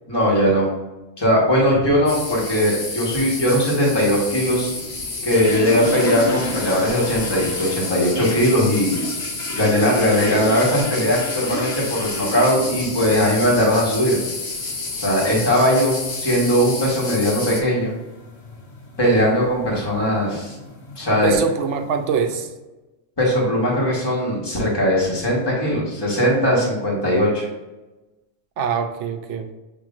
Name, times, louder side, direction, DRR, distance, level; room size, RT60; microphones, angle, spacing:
voice 1, 0.1-0.7 1.2-4.7 5.2-9.0 9.5-14.2 14.9-17.9 19.0-20.5 21.0-21.3 23.2-27.4, equal, 20° left, -5 dB, 1.3 m, -19 dB
sound 1, 2.1-17.6, left 3 dB, 85° left, 1.3 m, -30 dB
sound 2, 5.3-22.4, left 1 dB, 65° left, 1.2 m, -34 dB
voice 2, 21.2-22.5 28.6-29.5, right 6 dB, 85° right, 6 dB, 0.9 m, -23 dB
7.1 x 3.0 x 2.5 m, 1.1 s
omnidirectional pair, 1.2 m